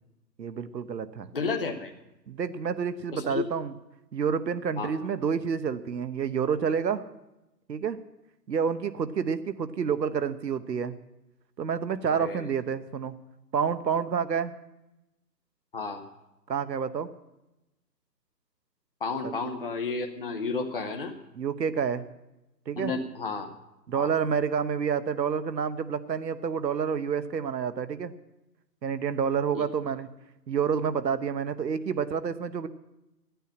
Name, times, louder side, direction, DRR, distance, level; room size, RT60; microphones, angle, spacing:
voice 1, 0.4-1.3 2.3-3.7 4.1-7.1 7.7-8.0 8.5-10.9 11.6-13.1 13.5-14.5 16.5-17.1 21.4-22.0 22.7-22.9 23.9-28.1 28.8-30.1 30.5-32.7, right 6 dB, 80° right, 13 dB, 1.1 m, -29 dB
voice 2, 1.3-1.9 3.1-3.5 4.8-4.9 12.1-12.4 15.7-16.0 19.0-21.1 22.8-23.5 23.9-24.1 29.5-29.6, left 4 dB, 35° left, 3 dB, 0.8 m, -32 dB
11.5 x 9.3 x 8.4 m, 0.94 s
hypercardioid pair, 180°, 50 cm